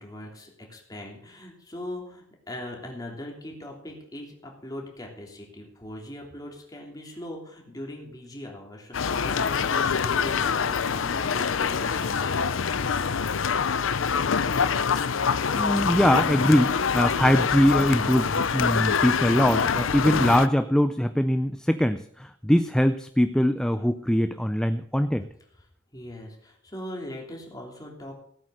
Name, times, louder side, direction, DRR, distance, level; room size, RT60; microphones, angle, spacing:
voice 1, 0.0-12.5 25.6-25.7 25.9-28.1, left 1 dB, 20° left, -1 dB, 3.2 m, -40 dB
sound 1, 8.9-20.5, left 6 dB, 80° left, 0.6 m, -25 dB
voice 2, 15.5-25.3, equal, 5° left, 9 dB, 0.4 m, -22 dB
16.5 x 8.8 x 6.4 m, 0.67 s
head